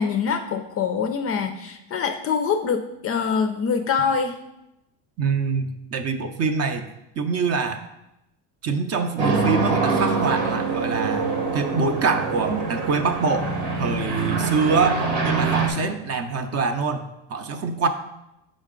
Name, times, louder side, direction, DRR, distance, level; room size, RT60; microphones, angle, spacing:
voice 1, 0.0-4.4, left 6 dB, 35° left, 7 dB, 0.4 m, -24 dB
voice 2, 5.2-6.9 7.2-7.8 8.6-13.5 13.8-17.0 17.3-17.9, right 4 dB, 35° right, 8 dB, 0.6 m, -24 dB
sound 1, 9.2-15.7, right 4 dB, 90° right, 1.6 m, -24 dB
6.3 x 5.0 x 3.7 m, 0.88 s
supercardioid pair, 120°, 45 cm